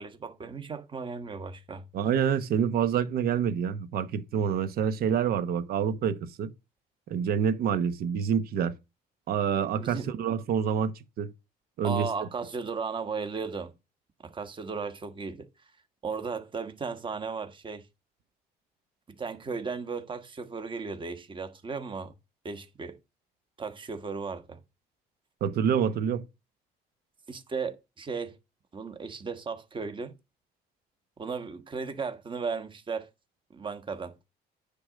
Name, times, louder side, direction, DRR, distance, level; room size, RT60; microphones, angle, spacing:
voice 1, 0.0-1.9 9.8-10.1 11.8-13.7 14.2-15.5 16.0-17.9 19.1-22.1 22.4-23.0 23.6-24.6 27.3-28.4 28.7-30.2 31.2-33.1 33.5-34.2, right 5 dB, 30° right, 1.3 m, -35 dB
voice 2, 1.9-6.5 7.1-8.7 9.3-11.3 11.8-12.1 25.4-26.2, right 7 dB, 65° right, 1.1 m, -27 dB
9.8 x 3.8 x 6.3 m
cardioid pair, 110°, 17 cm